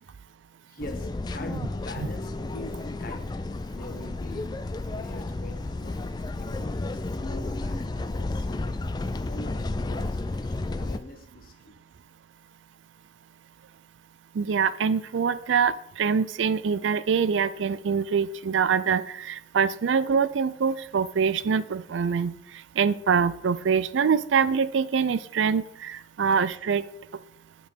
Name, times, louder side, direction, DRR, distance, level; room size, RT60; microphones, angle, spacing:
voice 1, 0.7-3.4 3.7-6.0 6.3-11.8, left 1 dB, 50° left, 6 dB, 1.1 m, -44 dB
sound 1, 0.8-11.0, left 2 dB, 20° left, 0.3 m, -32 dB
voice 2, 14.4-22.3 22.8-26.8, right 6 dB, 85° right, 16 dB, 0.4 m, -24 dB
8.8 x 4.7 x 5.3 m, 0.73 s
head